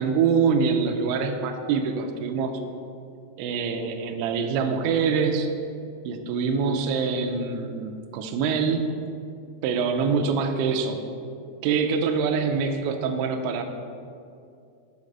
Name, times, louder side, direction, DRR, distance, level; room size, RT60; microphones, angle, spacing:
voice 1, 0.0-2.5 3.4-5.5 6.1-8.9 9.6-11.0 11.6-13.6, right 5 dB, 85° right, 5 dB, 2.7 m, -25 dB
6.4 x 4.8 x 5.3 m, 2.4 s
omnidirectional pair, 5.4 m